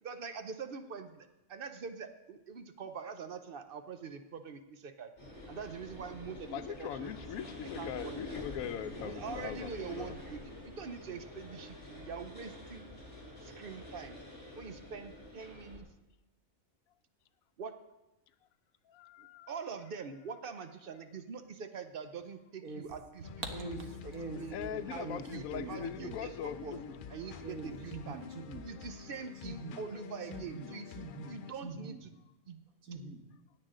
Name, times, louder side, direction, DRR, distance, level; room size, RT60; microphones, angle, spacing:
voice 1, 0.0-5.1 5.5-7.1 7.8-8.4 9.0-12.9 13.4-14.2 14.5-15.9 17.6-17.7 19.2-23.3 23.6-24.6 24.9-26.8 27.1-28.2 28.6-30.9 31.3-32.1 32.5-32.6, right 6 dB, 50° right, 9 dB, 0.7 m, -44 dB
sound 1, 5.2-15.8, left 1 dB, 25° left, 2.8 m, -47 dB
voice 2, 6.5-10.1 18.9-19.5 24.5-26.9, left 9 dB, 85° left, 12 dB, 1.0 m, -41 dB
sound 2, 23.2-31.5, left 8 dB, 70° left, 0.5 m, -49 dB
voice 3, 23.5-23.8 24.1-25.2 25.5-25.7 26.0-26.2 26.7-26.9 27.4-28.6 29.4-29.8 30.3-30.7 31.0-31.3 31.6-32.0 32.9-33.2, right 2 dB, 80° right, 4 dB, 1.7 m, -43 dB
16.0 x 8.8 x 3.7 m, 0.99 s
omnidirectional pair, 1.4 m